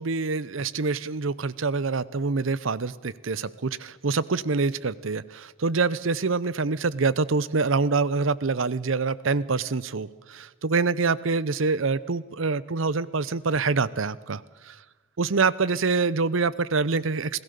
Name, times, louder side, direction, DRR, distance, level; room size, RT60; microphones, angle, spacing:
voice 1, 0.0-14.8 15.2-17.4, right 4 dB, 70° right, 19 dB, 0.7 m, -26 dB
27.0 x 17.5 x 6.8 m, 1.3 s
head